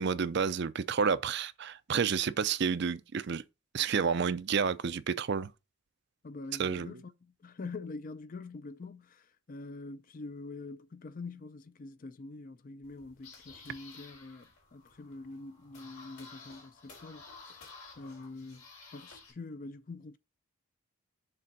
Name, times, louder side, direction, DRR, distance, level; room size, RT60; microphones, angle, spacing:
voice 1, 0.0-3.4 3.7-5.5 6.6-6.9, right 6 dB, 50° right, 0.4 m, -30 dB
voice 2, 6.2-17.6 18.0-18.6 18.9-20.2, left 3 dB, 40° left, 0.4 m, -45 dB
sound 1, 12.8-19.3, left 4 dB, 90° left, 3.8 m, -53 dB
6.8 x 3.6 x 5.3 m
head